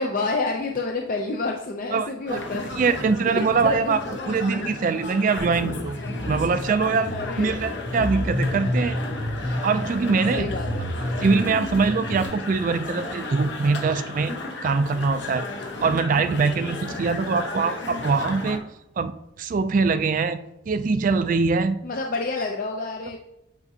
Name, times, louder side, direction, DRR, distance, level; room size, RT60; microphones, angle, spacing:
voice 1, 0.0-2.7 3.3-4.0 7.1-7.6 10.3-10.9 21.8-23.2, left 3 dB, 45° left, 2 dB, 0.5 m, -28 dB
voice 2, 1.9-2.4 2.8-4.0 4.3-7.1 7.4-9.0 9.5-10.5 11.2-14.3 14.6-15.4 15.8-18.6 19.0-19.1 19.4-20.4 20.7-21.8, right 4 dB, 40° right, 10 dB, 0.3 m, -23 dB
sound 1, 2.3-18.6, left 2 dB, 60° left, 1.0 m, -34 dB
sound 2, 5.4-12.2, equal, 15° left, 1.0 m, -30 dB
8.3 x 5.2 x 2.7 m, 0.87 s
head